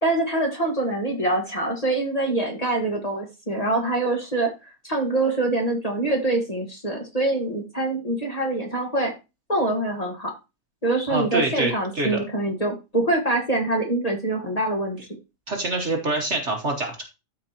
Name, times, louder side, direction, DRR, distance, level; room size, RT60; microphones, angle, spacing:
voice 1, 0.0-4.5 4.8-9.1 9.5-10.3 10.8-15.0, right 2 dB, 25° left, 1 dB, 1.6 m, -24 dB
voice 2, 11.1-12.2 15.5-17.0, right 2 dB, 45° right, 3 dB, 1.4 m, -25 dB
13.0 x 4.6 x 2.9 m, 0.27 s
omnidirectional pair, 1.8 m